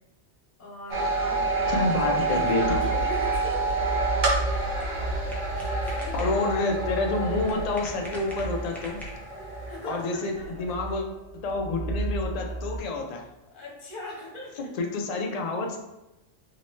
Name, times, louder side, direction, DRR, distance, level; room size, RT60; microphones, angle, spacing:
voice 1, 0.6-3.8 5.5-6.3 9.7-10.5 12.5-12.6 13.5-14.8, left 1 dB, 45° left, -4 dB, 1.1 m, -40 dB
sound 1, 0.8-12.8, right 3 dB, 65° right, 0.9 m, -34 dB
sound 2, 0.9-10.5, right 3 dB, 50° right, 0.7 m, -29 dB
voice 2, 1.7-2.8 6.1-9.0 9.8-11.0 11.4-13.2 14.8-15.8, left 3 dB, 90° left, 2 dB, 0.3 m, -28 dB
sound 3, 4.8-9.5, equal, ahead, 0.4 m, -45 dB
3.0 x 2.9 x 3.1 m, 0.98 s
omnidirectional pair, 1.2 m